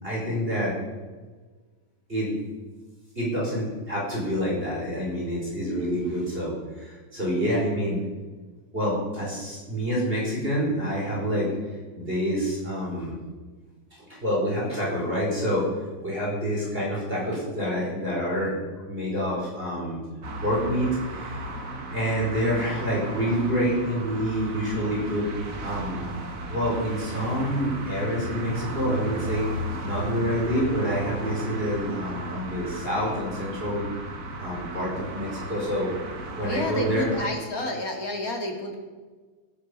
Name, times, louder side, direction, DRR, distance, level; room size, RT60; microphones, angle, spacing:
voice 1, 0.0-0.8 2.1-2.4 3.2-8.0 8.7-11.5 11.9-13.2 14.1-15.7 16.0-18.5 18.9-20.0 20.4-21.4 21.9-25.3 25.6-26.0 26.5-33.8 34.4-35.9 36.4-37.3, equal, 15° right, -5 dB, 5.3 m, -27 dB
sound 1, 20.2-37.3, right 1 dB, 40° right, 1.4 m, -35 dB
voice 2, 36.4-38.8, left 2 dB, 30° left, 2 dB, 2.3 m, -30 dB
19.0 x 11.5 x 5.3 m, 1.4 s
omnidirectional pair, 3.4 m